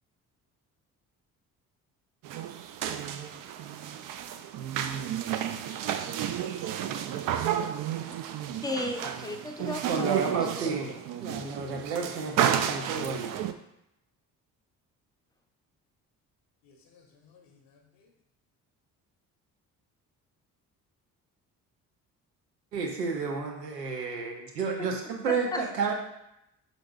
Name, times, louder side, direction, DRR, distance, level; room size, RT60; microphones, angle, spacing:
sound 1, 2.2-13.5, right 10 dB, 45° right, 0.4 m, -32 dB
voice 1, 5.6-8.2 16.6-18.1, left 4 dB, 60° left, 0.8 m, -59 dB
voice 2, 8.6-10.8 24.8-24.9 25.5-25.6, left 2 dB, 10° left, 0.6 m, -35 dB
voice 3, 9.9-13.4 22.7-25.9, right 5 dB, 90° right, 0.6 m, -31 dB
5.9 x 3.9 x 2.3 m
figure-of-eight pair, 40°, 47 cm